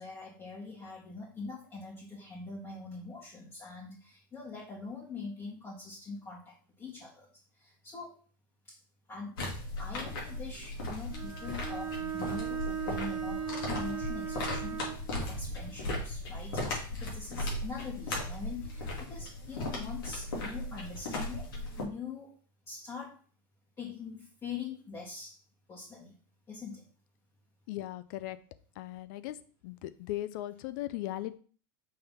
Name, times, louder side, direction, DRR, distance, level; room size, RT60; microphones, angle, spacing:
voice 1, 0.0-7.3 7.5-8.2 8.6-8.8 9.1-9.4 9.8-21.5 21.7-22.3 22.7-23.2 23.8-25.4 25.7-26.2 26.5-26.8, left 4 dB, 25° left, -5 dB, 1.8 m, -43 dB
sound 1, 9.4-21.8, left 1 dB, 85° left, 2.6 m, -37 dB
Bowed string instrument, 11.1-15.1, right 8 dB, 20° right, 1.8 m, -37 dB
voice 2, 27.7-28.4 28.8-29.4 29.6-31.4, left 15 dB, 65° left, 14 dB, 0.5 m, -38 dB
5.6 x 3.4 x 5.5 m, 0.41 s
supercardioid pair, 115°, 12 cm